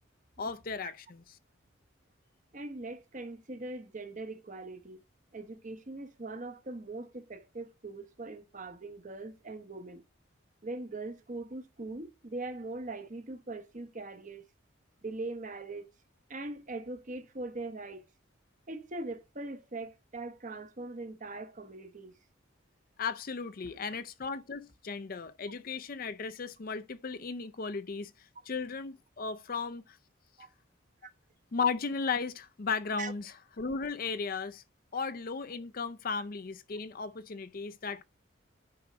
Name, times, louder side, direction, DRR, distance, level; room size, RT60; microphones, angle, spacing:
voice 1, 0.4-1.2 23.0-28.1 28.5-30.0 31.5-33.3 33.6-34.6 34.9-38.0, left 5 dB, 45° left, 0.5 m, -35 dB
voice 2, 2.5-5.0 5.3-10.0 10.6-14.5 15.0-15.9 16.3-18.1 18.7-22.1 23.6-23.7 30.4-30.5 31.0-31.1 33.0-33.1 34.9-35.1, right 2 dB, 35° right, 0.9 m, -41 dB
9.6 x 4.3 x 5.0 m
head